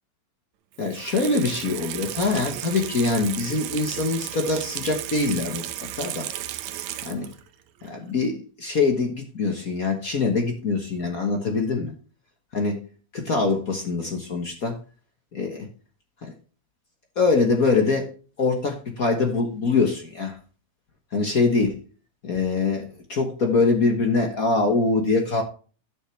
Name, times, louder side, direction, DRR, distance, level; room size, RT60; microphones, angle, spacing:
Water tap faucet / Sink (filling or washing), 0.7-7.5 7.8-7.9, right 12 dB, 80° right, 2.1 m, -34 dB
voice 1, 0.8-5.6 5.9-6.3 7.0-7.3 7.8-11.9 12.5-12.8 13.1-14.8 15.3-15.7 16.2-16.3 17.2-18.1 18.4-20.4 21.1-21.8 22.2-25.4, left 3 dB, 50° left, 3 dB, 1.0 m, -23 dB
12.5 x 6.9 x 3.2 m, 0.37 s
omnidirectional pair, 3.4 m